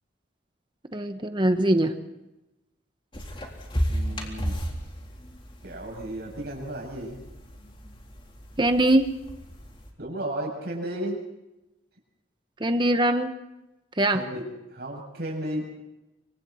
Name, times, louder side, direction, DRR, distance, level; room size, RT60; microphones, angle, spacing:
voice 1, 0.9-2.0 8.6-9.1 12.6-13.3 14.0-14.2, right 1 dB, 25° right, 8 dB, 1.1 m, -22 dB
sound 1, 3.1-9.9, equal, 30° left, 3.7 m, -34 dB
voice 2, 3.9-4.6 5.6-7.2 10.0-11.2 14.1-15.7, right 1 dB, 60° right, 1 dB, 7.5 m, -34 dB
27.5 x 25.0 x 4.3 m, 0.96 s
head